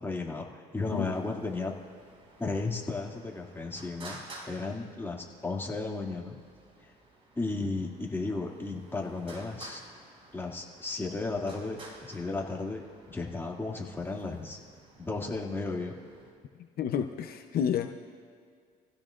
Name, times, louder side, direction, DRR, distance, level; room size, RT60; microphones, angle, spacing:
voice 1, 0.0-1.7 2.4-4.2 4.5-6.4 6.8-6.9 7.4-9.8 10.3-12.8 13.1-14.6 15.0-15.9, left 3 dB, 15° left, -1 dB, 2.4 m, -34 dB
Traffic noise roadway noise, 0.8-16.3, right 2 dB, 35° right, 4.7 m, -53 dB
voice 2, 16.8-17.9, left 8 dB, 60° left, 5 dB, 0.8 m, -30 dB
27.0 x 16.0 x 2.5 m, 2.1 s
cardioid pair, 110°, 17 cm